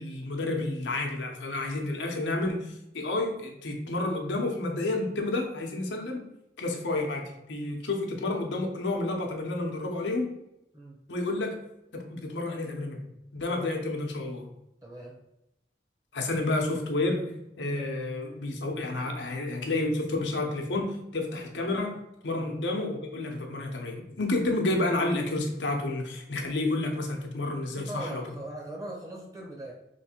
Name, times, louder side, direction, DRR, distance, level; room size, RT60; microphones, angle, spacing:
voice 1, 0.0-6.3 6.6-10.3 11.1-11.5 11.9-13.0 13.3-14.5 16.1-17.2 17.6-22.0 22.2-28.2, left 2 dB, 90° left, 2 dB, 0.8 m, -30 dB
voice 2, 14.8-15.2 22.3-22.5 27.7-29.7, right 1 dB, 20° right, -3 dB, 1.0 m, -40 dB
3.3 x 3.2 x 4.3 m, 0.86 s
head